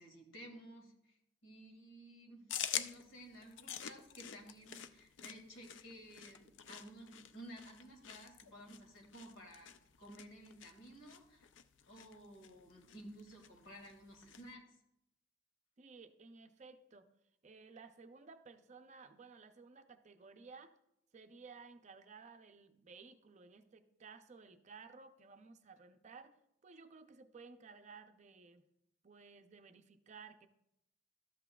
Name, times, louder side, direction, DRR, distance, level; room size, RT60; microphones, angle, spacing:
voice 1, 0.0-9.7 10.0-11.5 11.9-14.8, equal, 80° left, 3 dB, 1.9 m, -54 dB
sound 1, 2.5-14.5, left 9 dB, 65° left, 0.4 m, -48 dB
voice 2, 15.8-17.1 17.4-20.7 21.1-26.4 26.6-28.6 29.0-30.5, right 4 dB, 35° right, 8 dB, 0.5 m, -56 dB
13.0 x 8.2 x 2.3 m, 0.81 s
head